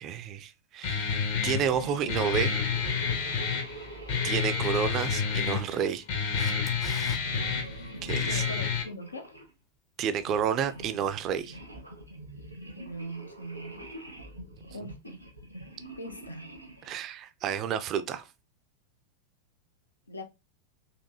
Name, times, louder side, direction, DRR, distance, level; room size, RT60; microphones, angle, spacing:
voice 1, 0.0-2.6 4.2-6.6 8.0-8.4 10.0-11.6 16.9-18.3, right 8 dB, 35° right, 0.5 m, -30 dB
Guitar, 0.8-8.8, left 6 dB, 50° left, 1.0 m, -29 dB
sound 1, 1.5-6.3 7.2-9.5 10.1-17.0, right 1 dB, 90° right, 1.1 m, -45 dB
Camera, 6.4-7.2 13.9-14.0, left 5 dB, 25° left, 0.6 m, -44 dB
voice 2, 8.2-9.4 12.7-13.9 14.7-15.2 16.0-16.5 20.1-20.2, equal, 80° left, 0.7 m, -41 dB
4.3 x 2.9 x 2.7 m
figure-of-eight pair, 90°, 0 cm